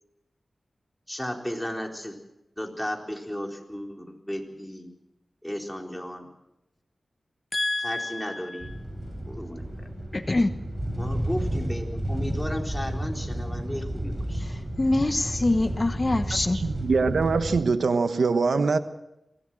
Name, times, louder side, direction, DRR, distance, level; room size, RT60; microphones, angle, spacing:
voice 1, 1.1-2.2 2.6-4.9 5.4-6.3 7.8-8.7 9.3-9.6 11.0-14.4, equal, 5° left, 4.1 m, -34 dB
voice 2, 7.5-8.4 10.1-10.5 14.8-16.6, left 2 dB, 35° left, 1.1 m, -25 dB
sound 1, 8.6-17.6, right 1 dB, 20° right, 7.9 m, -32 dB
voice 3, 16.5-18.8, right 4 dB, 85° right, 1.3 m, -23 dB
24.0 x 17.0 x 7.8 m
wide cardioid pair, 60°, 0 cm